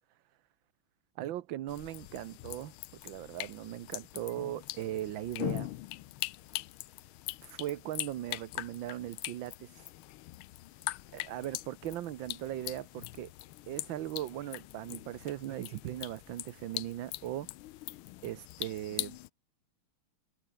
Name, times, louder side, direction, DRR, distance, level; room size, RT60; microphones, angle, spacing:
voice 1, 1.2-2.7 3.0-5.7 7.4-9.9 11.1-13.3 13.7-17.5 18.2-19.2, right 13 dB, 70° right, 1.6 m, -39 dB
sound 1, 1.7-19.3, left 17 dB, 85° left, 1.5 m, -42 dB
omnidirectional pair, 2.3 m